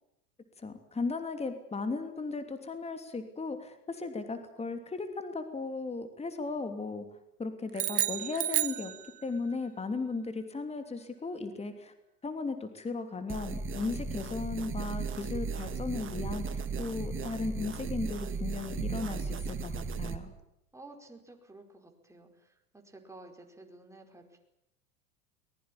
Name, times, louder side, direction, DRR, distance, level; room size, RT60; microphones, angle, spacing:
voice 1, 0.6-7.1 7.4-8.9 9.2-11.9 12.2-20.3, left 3 dB, 15° left, 8 dB, 3.1 m, -36 dB
sound 1, 7.7-9.5, right 12 dB, 70° right, 1.2 m, -31 dB
sound 2, 13.3-20.2, right 4 dB, 25° right, 2.3 m, -36 dB
voice 2, 20.7-24.4, right 2 dB, 5° right, 2 dB, 4.9 m, -52 dB
22.5 x 20.5 x 8.9 m, 0.83 s
figure-of-eight pair, 90°, 48 cm